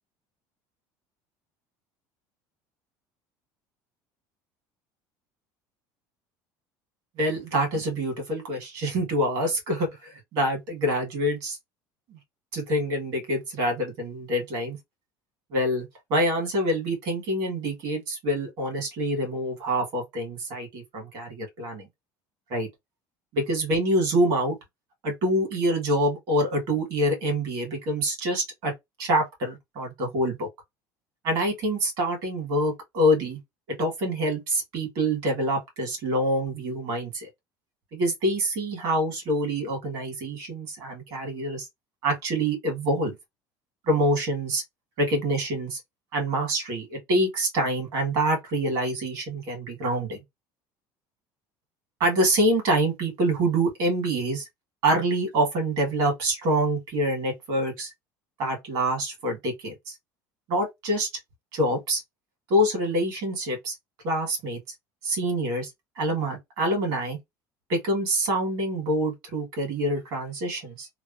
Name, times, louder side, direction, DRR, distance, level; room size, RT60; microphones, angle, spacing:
voice 1, 7.2-11.6 12.1-12.2 12.5-14.8 15.5-21.9 22.5-22.7 23.3-24.6 25.0-28.7 29.0-30.5 31.2-33.4 33.8-37.3 37.9-41.7 42.0-43.1 43.9-44.6 45.0-45.8 46.1-50.2 52.0-54.4 54.8-57.9 58.4-59.9 60.5-61.1 61.5-62.0 62.5-63.7 64.0-64.6 65.0-65.7 66.0-67.2 67.7-70.9, right 1 dB, 50° right, 1.7 m, -26 dB
3.0 x 2.2 x 2.5 m
cardioid pair, 180°, 9 cm